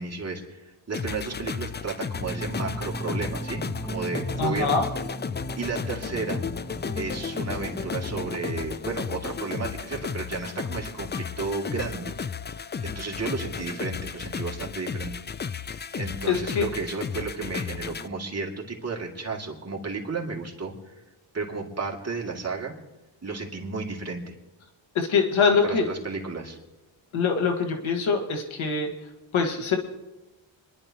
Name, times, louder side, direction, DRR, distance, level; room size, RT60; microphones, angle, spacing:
voice 1, 0.0-4.8 5.6-6.4 7.0-12.1 12.8-15.1 15.9-20.9 21.3-22.7 23.2-24.3 25.4-26.6, right 4 dB, 35° right, -1 dB, 2.5 m, -33 dB
sound 1, 0.9-18.1, left 6 dB, 25° left, 0.4 m, -34 dB
sound 2, 2.2-8.5, right 1 dB, ahead, 1.0 m, -36 dB
voice 2, 4.4-4.9 16.2-16.7 25.0-25.9 27.1-28.9 29.3-29.8, left 5 dB, 90° left, 3 dB, 1.8 m, -23 dB
27.0 x 11.0 x 3.0 m, 1.0 s
cardioid pair, 85°, 46 cm